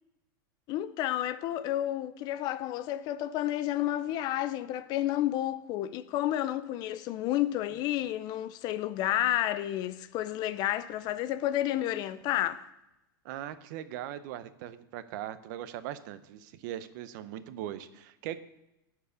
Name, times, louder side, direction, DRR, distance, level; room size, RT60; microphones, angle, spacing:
voice 1, 0.7-12.6, left 13 dB, 35° left, 0.4 m, -31 dB
voice 2, 13.2-18.5, right 11 dB, 55° right, 0.6 m, -40 dB
11.0 x 4.7 x 6.8 m
supercardioid pair, 145°, 12 cm